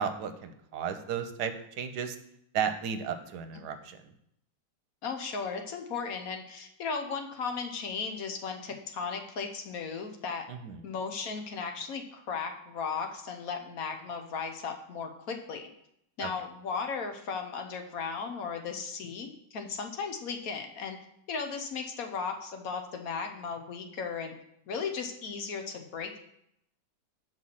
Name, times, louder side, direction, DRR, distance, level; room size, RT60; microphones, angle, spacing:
voice 1, 0.0-2.2 2.5-4.0 10.5-10.8 16.2-16.3, right 7 dB, 75° right, 8 dB, 1.2 m, -34 dB
voice 2, 5.0-10.5 10.8-15.7 16.2-21.0 21.3-24.3 24.7-26.2, left 5 dB, 60° left, 5 dB, 1.2 m, -36 dB
6.2 x 4.9 x 5.6 m, 0.75 s
omnidirectional pair, 1.9 m